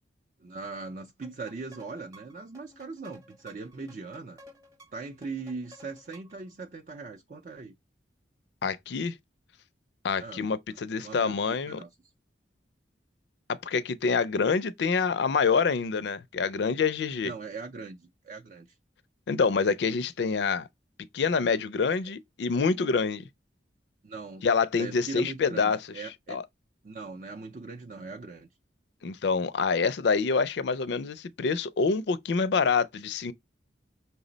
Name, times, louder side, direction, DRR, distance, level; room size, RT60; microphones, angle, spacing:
voice 1, 0.4-4.4 4.9-7.7 10.2-10.4 11.0-11.9 17.2-18.7 21.9-22.0 24.0-24.5 24.7-26.4 26.8-28.5, right 4 dB, 45° right, 0.4 m, -40 dB
sound 1, 1.2-6.5, equal, 20° right, 0.8 m, -54 dB
voice 2, 8.6-9.1 10.0-11.8 13.5-17.3 19.3-20.7 21.1-23.3 24.4-25.8 26.3-26.4 29.0-33.3, left 5 dB, 70° left, 0.4 m, -26 dB
5.6 x 2.0 x 3.8 m
head